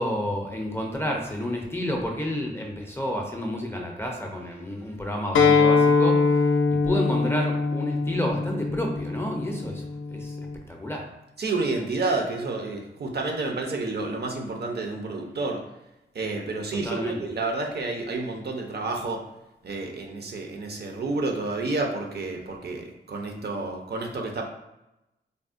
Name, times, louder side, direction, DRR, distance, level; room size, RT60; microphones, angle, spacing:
voice 1, 0.0-9.8 10.1-11.1 16.7-17.2, left 1 dB, 10° left, 0 dB, 0.5 m, -30 dB
Acoustic guitar, 5.3-10.5, left 4 dB, 85° left, 0.4 m, -22 dB
voice 2, 11.4-15.6 16.1-19.2 19.6-24.5, right 3 dB, 55° right, 1 dB, 0.5 m, -30 dB
3.5 x 2.0 x 2.4 m, 0.89 s
wide cardioid pair, 85°, 19 cm